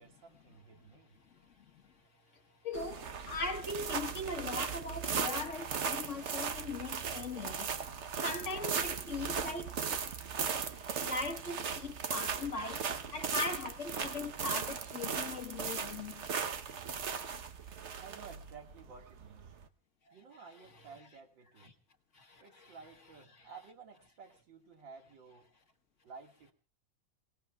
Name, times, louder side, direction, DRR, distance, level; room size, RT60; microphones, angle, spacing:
voice 1, 0.0-1.2 18.0-19.6 20.1-21.7 22.4-25.5 26.0-26.5, right 5 dB, 90° right, 2.7 m, -53 dB
voice 2, 1.2-1.9 2.6-7.8 8.2-9.8 11.0-12.8 13.1-16.3 20.1-20.9 21.6-21.7 22.1-22.8 23.3-23.5, left 3 dB, 45° left, 1.5 m, -40 dB
sound 1, 2.7-19.6, right 6 dB, 50° right, 1.0 m, -38 dB
28.5 x 18.5 x 2.3 m
omnidirectional pair, 2.0 m